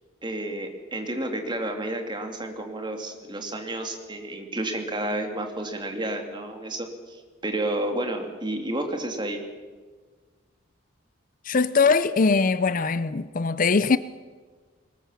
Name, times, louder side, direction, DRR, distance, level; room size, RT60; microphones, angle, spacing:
voice 1, 0.2-9.4, right 1 dB, 25° right, 2.7 m, -31 dB
voice 2, 11.4-14.0, left 4 dB, 40° left, 0.5 m, -21 dB
22.5 x 20.0 x 7.2 m
head